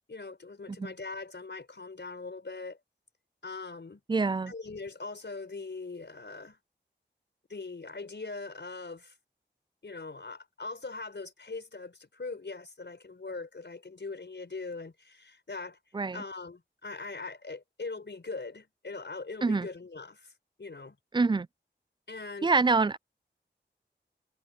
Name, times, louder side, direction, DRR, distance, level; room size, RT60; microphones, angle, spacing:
voice 1, 0.1-2.8 3.4-4.0 4.5-6.6 7.5-9.1 9.8-15.8 16.1-20.3 20.6-21.0 22.1-22.5, left 3 dB, 65° left, 4.8 m, -41 dB
voice 2, 4.1-4.5 15.9-16.2 19.4-19.7 21.1-21.5 22.4-23.0, right 4 dB, 25° right, 0.4 m, -25 dB
wide cardioid pair, 50°, 19 cm